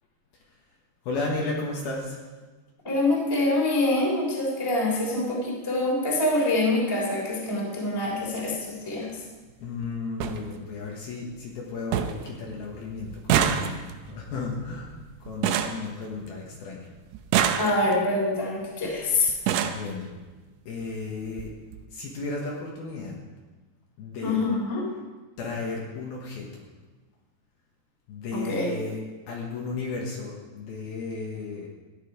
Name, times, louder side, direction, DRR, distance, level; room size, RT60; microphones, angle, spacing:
voice 1, 1.1-2.2 9.6-13.8 14.1-14.9 15.2-16.8 19.6-20.1 20.7-21.5 21.9-23.2 24.0-24.4 25.4-26.6 28.1-29.0 29.3-31.7, left 3 dB, 65° left, -2 dB, 3.0 m, -34 dB
voice 2, 2.8-9.1 17.6-19.3 24.2-24.9 28.3-28.7, left 2 dB, 5° left, -3 dB, 2.3 m, -25 dB
sound 1, 8.1-8.3 9.5-9.6 9.8-9.9 10.2-10.4 10.9-11.3 11.6-11.7 11.9-12.3 12.6-16.6 17.1-18.1 18.9-19.0 19.3-19.9 20.8-20.9 21.3-21.5 21.7-21.8, right 9 dB, 80° right, 2.8 m, -27 dB
14.0 x 10.0 x 5.0 m, 1.3 s
omnidirectional pair, 5.1 m